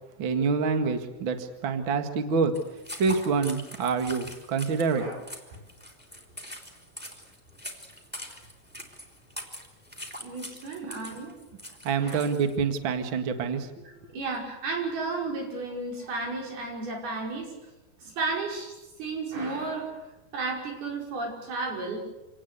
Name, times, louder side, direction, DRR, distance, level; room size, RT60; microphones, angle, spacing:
voice 1, 0.2-2.6 3.0-5.1 11.8-13.7, right 5 dB, 40° right, 7 dB, 2.0 m, -26 dB
sound 1, 2.5-12.6, left 1 dB, 5° right, 3.2 m, -43 dB
voice 2, 10.2-11.3 12.0-12.2 13.9-17.5 18.0-20.0 20.3-22.0, right 3 dB, 85° right, 1 dB, 7.4 m, -33 dB
27.0 x 19.0 x 8.3 m, 1.0 s
omnidirectional pair, 4.3 m